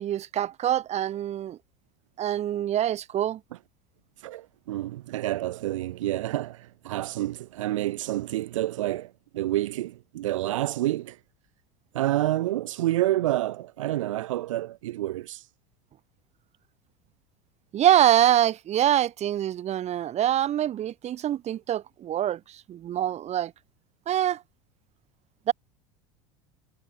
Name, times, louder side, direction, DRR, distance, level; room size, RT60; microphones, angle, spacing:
voice 1, 0.0-1.6 2.2-3.4 17.7-23.5 24.1-24.4 25.5-25.6, right 11 dB, 40° right, 8.0 m, -25 dB
voice 2, 4.2-11.2 11.9-15.5, right 15 dB, 75° right, 2.8 m, -28 dB
hypercardioid pair, 80°, 17 cm